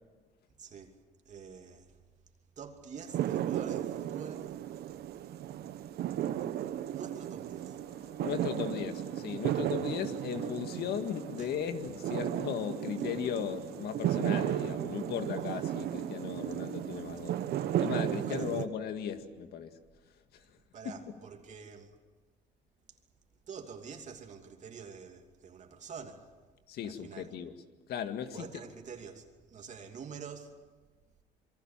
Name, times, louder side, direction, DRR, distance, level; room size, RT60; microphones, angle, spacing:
voice 1, 0.6-1.0 1.2-1.9 2.6-4.5 6.9-7.8 11.4-11.5 17.1-17.2 18.2-18.6 20.7-22.0 23.5-26.3 26.8-27.3 28.3-30.5, right 6 dB, 45° right, 2.8 m, -47 dB
sound 1, 3.0-18.7, right 11 dB, 70° right, 1.2 m, -35 dB
Organ, 7.4-18.4, left 2 dB, 55° left, 6.6 m, -61 dB
voice 2, 8.2-17.4 17.8-19.7 20.3-20.4 20.8-21.0 26.7-27.5 27.9-28.5, left 8 dB, 70° left, 2.0 m, -37 dB
27.5 x 23.0 x 7.4 m
cardioid pair, 110°, 17 cm